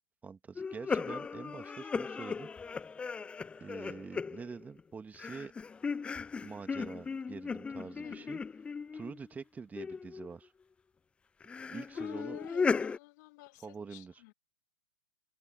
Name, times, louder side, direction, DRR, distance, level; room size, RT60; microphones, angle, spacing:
voice 1, 0.2-2.5 3.1-3.2 3.6-5.5 6.4-8.4 8.9-10.5 11.7-12.4 13.6-14.1, right 5 dB, 10° right, 2.0 m, -45 dB
sound 1, 0.6-4.8 5.1-9.2 9.8-10.3 11.4-13.0, left 5 dB, 10° left, 0.4 m, -37 dB
voice 2, 7.8-8.3 11.9-14.3, left 21 dB, 45° left, 2.3 m, -51 dB
hypercardioid pair, 115°, 13 cm